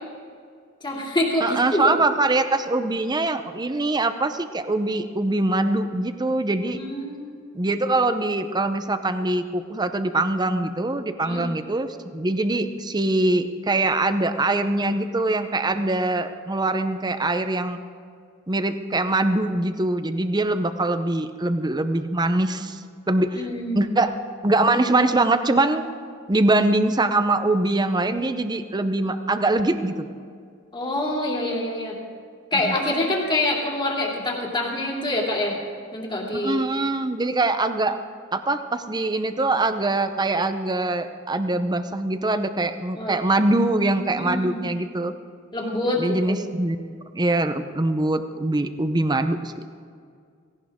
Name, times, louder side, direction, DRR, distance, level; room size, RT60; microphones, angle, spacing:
voice 1, 0.8-1.9 6.7-7.3 11.2-11.4 23.3-23.9 24.8-24.9 30.7-32.0 32.5-35.6 35.9-36.6 42.9-43.2 44.1-44.6 45.5-46.4, left 1 dB, 25° left, -2 dB, 2.7 m, -26 dB
voice 2, 1.4-6.8 7.5-17.8 18.5-22.8 23.1-23.5 23.7-24.1 24.4-25.9 26.3-30.1 32.6-32.7 36.3-38.0 38.3-45.1 46.0-46.8 47.1-49.5, right 2 dB, 20° right, 9 dB, 0.7 m, -23 dB
17.5 x 17.5 x 3.7 m, 2.2 s
head